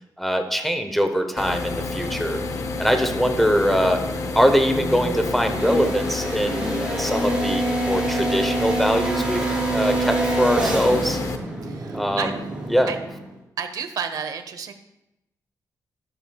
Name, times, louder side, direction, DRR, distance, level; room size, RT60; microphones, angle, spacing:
voice 1, 0.2-2.4 2.8-4.0 4.3-9.4 9.7-11.2 11.9-12.4 12.7-12.9, equal, ahead, 6 dB, 0.8 m, -22 dB
sound 1, 1.4-11.4, left 4 dB, 50° left, 0.7 m, -30 dB
sound 2, 1.5-13.3, right 2 dB, 15° right, 2.4 m, -28 dB
voice 2, 11.6-12.3 12.9-13.0 13.6-14.7, right 7 dB, 60° right, 8 dB, 0.8 m, -31 dB
13.5 x 11.0 x 2.3 m, 0.90 s
wide cardioid pair, 165°, 7 cm